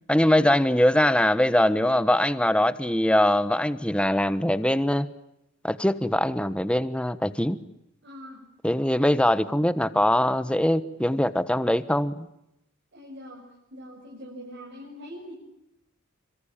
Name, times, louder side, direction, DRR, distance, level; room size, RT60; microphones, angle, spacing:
voice 1, 0.1-5.1 5.6-7.6 8.6-12.3, left 1 dB, 5° left, 13 dB, 1.2 m, -22 dB
voice 2, 8.0-8.4 12.9-15.3, equal, 60° right, -1 dB, 6.7 m, -43 dB
27.5 x 25.0 x 8.8 m, 0.83 s
head